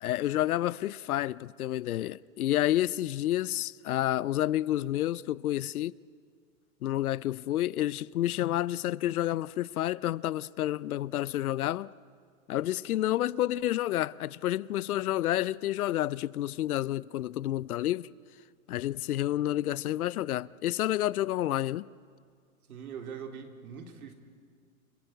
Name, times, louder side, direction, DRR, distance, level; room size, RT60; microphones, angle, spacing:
voice 1, 0.0-5.9 6.8-11.9 12.5-18.1 18.7-21.9, left 13 dB, 85° left, 0.7 m, -29 dB
voice 2, 22.7-24.1, right 7 dB, 85° right, 3.6 m, -42 dB
29.0 x 20.0 x 8.0 m
hypercardioid pair, 135°, 42 cm